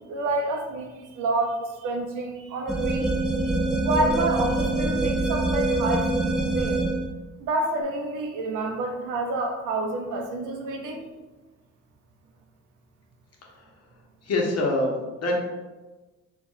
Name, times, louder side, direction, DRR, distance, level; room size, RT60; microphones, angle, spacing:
voice 1, 0.1-3.2 3.8-6.8 7.4-11.0, right 2 dB, 80° right, 2 dB, 0.8 m, -28 dB
sound 1, 2.7-7.1, right 2 dB, ahead, 0.4 m, -25 dB
voice 2, 14.2-15.3, left 2 dB, 55° left, 0 dB, 1.1 m, -26 dB
3.9 x 2.4 x 4.3 m, 1.2 s
cardioid pair, 90°, 30 cm